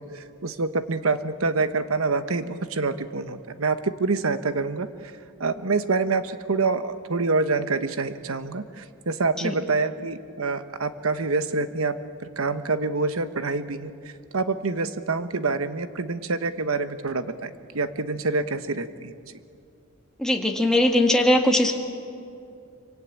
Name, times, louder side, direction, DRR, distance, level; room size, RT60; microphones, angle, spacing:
voice 1, 0.0-5.1 5.4-12.0 12.4-19.1, right 3 dB, 80° right, 11 dB, 1.1 m, -26 dB
voice 2, 20.2-21.8, left 1 dB, 5° left, 1 dB, 1.7 m, -20 dB
26.0 x 24.5 x 8.7 m, 2.6 s
head